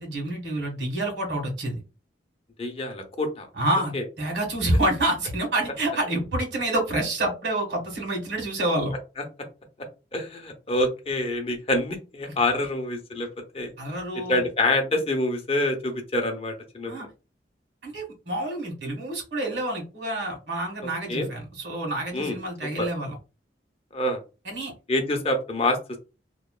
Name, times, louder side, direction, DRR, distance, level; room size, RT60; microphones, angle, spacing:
voice 1, 0.0-1.8 3.6-8.9 13.8-14.5 16.9-17.1 17.8-23.1 24.4-24.7 25.1-25.2, right 1 dB, 80° right, 1 dB, 1.5 m, -28 dB
voice 2, 2.6-3.5 3.9-4.0 10.1-13.3 13.5-13.7 14.3-17.1 21.1-21.3 22.1-22.4 22.8-22.9 23.9-24.2 24.9-25.8, left 1 dB, 35° left, 4 dB, 0.6 m, -26 dB
3.0 x 2.2 x 2.3 m, 0.30 s
head